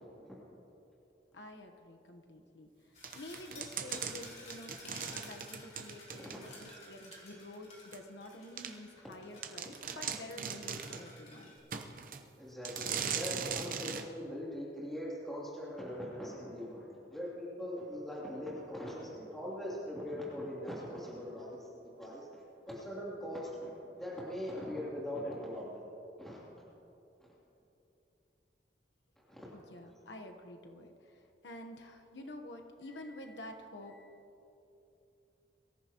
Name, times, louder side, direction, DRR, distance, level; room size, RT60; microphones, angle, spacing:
voice 1, 1.3-2.7 3.1-11.5 29.5-34.2, left 1 dB, 80° left, 4 dB, 1.1 m, -49 dB
sound 1, 2.9-11.6, left 1 dB, 40° left, 3.3 m, -54 dB
sound 2, 3.0-6.7 7.1-7.2 7.9-8.0 8.6-8.7 9.1-9.2 9.4-11.1 11.7-12.2 12.6-14.1, right 7 dB, 50° right, 0.8 m, -39 dB
voice 2, 12.4-22.3 22.7-25.8 26.2-26.4 29.3-29.5, equal, ahead, -7 dB, 2.9 m, -41 dB
23.0 x 14.5 x 3.0 m, 2.9 s
head